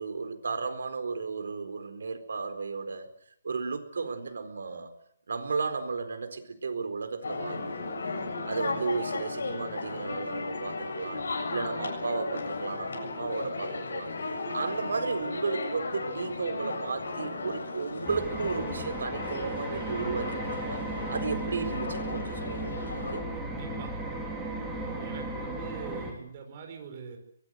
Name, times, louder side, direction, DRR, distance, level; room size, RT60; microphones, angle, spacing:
voice 1, 0.0-3.1 3.4-4.9 5.3-8.0 8.5-11.2 11.5-14.1 14.5-20.8 21.1-22.8 23.1-23.2, right 4 dB, 85° right, 8 dB, 4.3 m, -34 dB
sound 1, 7.2-23.2, left 3 dB, 90° left, 7.6 m, -35 dB
sound 2, 18.0-26.1, right 2 dB, 5° right, 3.8 m, -35 dB
voice 2, 23.3-23.9 25.0-27.2, right 6 dB, 30° right, 4 dB, 4.8 m, -43 dB
23.5 x 19.5 x 8.1 m, 0.68 s
hypercardioid pair, 175°, 0 cm